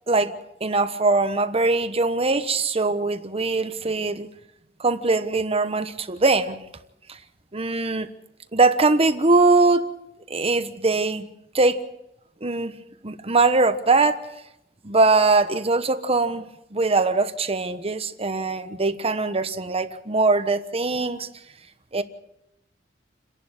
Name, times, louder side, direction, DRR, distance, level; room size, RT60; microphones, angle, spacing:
voice 1, 0.1-4.3 4.8-6.6 7.1-7.2 7.5-8.1 8.5-9.8 10.3-11.3 11.5-11.8 12.4-12.8 13.0-14.2 14.8-21.3 21.9-22.0, right 3 dB, 30° right, 10 dB, 1.2 m, -21 dB
29.0 x 11.5 x 8.0 m, 0.86 s
head